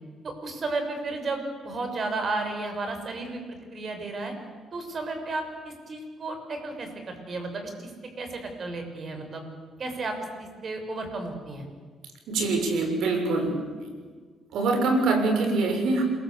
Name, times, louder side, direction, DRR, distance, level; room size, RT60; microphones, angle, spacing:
voice 1, 0.2-4.3 4.7-7.9 8.2-9.4 9.8-11.6, right 3 dB, 45° right, 5 dB, 6.7 m, -33 dB
voice 2, 12.3-13.9 14.5-16.0, right 3 dB, 80° right, 5 dB, 6.7 m, -24 dB
28.5 x 22.5 x 8.6 m, 1.5 s
cardioid pair, 90°, 0 cm